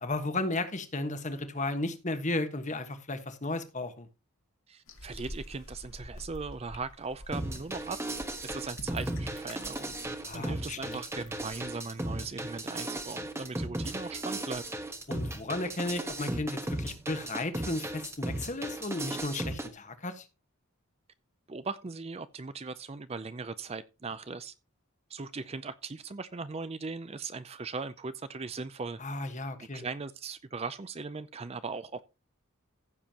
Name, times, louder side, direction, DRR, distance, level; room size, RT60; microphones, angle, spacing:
voice 1, 0.0-4.1 10.2-11.0 15.1-20.3 29.0-29.8, left 2 dB, 35° left, 1.4 m, -34 dB
voice 2, 4.7-8.0 8.4-9.9 10.3-14.6 21.5-24.5 25.1-29.0 29.6-32.0, right 4 dB, 25° right, 0.5 m, -39 dB
sound 1, 4.9-11.7, left 1 dB, 65° left, 2.3 m, -48 dB
sound 2, 7.3-19.7, right 1 dB, 10° right, 1.2 m, -36 dB
15.5 x 7.3 x 2.9 m
head